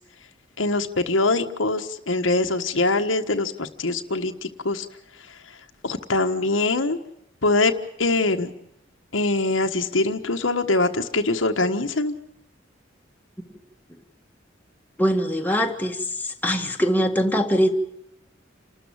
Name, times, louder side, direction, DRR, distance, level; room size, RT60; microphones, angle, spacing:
voice 1, 0.6-4.8 5.8-7.0 7.4-7.7 8.0-8.5 9.1-12.1, left 2 dB, 80° left, 1.4 m, -23 dB
voice 2, 15.0-16.0 16.2-17.7, equal, 10° left, 1.7 m, -22 dB
29.0 x 13.0 x 8.7 m
head